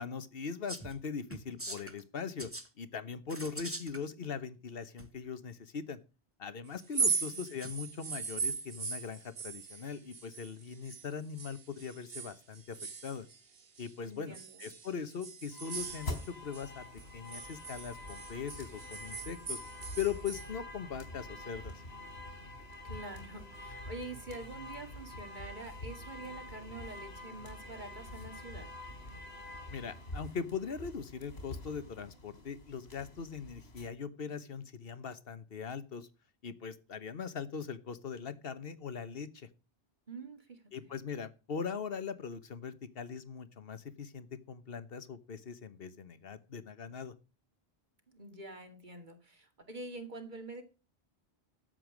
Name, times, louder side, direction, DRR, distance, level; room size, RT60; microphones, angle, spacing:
voice 1, 0.0-2.5 2.8-6.0 6.4-12.8 13.0-13.3 13.8-16.8 17.1-19.6 20.0-21.7 29.7-36.1 36.4-39.5 40.7-47.1, left 6 dB, 65° left, 13 dB, 1.3 m, -40 dB
sound 1, 0.7-1.0 1.3-2.0 2.4-2.7 3.3-4.0 5.0-5.1 7.6-7.7, right 1 dB, 15° right, 1.3 m, -43 dB
sound 2, 6.8-11.1 11.4-13.9 14.3-16.7 17.0-20.5, right 5 dB, 70° right, 1.6 m, -38 dB
voice 2, 7.0-7.4 14.0-14.7 22.8-28.7 40.1-40.9 48.1-50.6, right 2 dB, 50° right, 6 dB, 2.5 m, -46 dB
sound 3, 15.5-33.9, left 1 dB, 85° left, 4.5 m, -46 dB
12.5 x 7.8 x 5.1 m, 0.32 s
omnidirectional pair, 1.0 m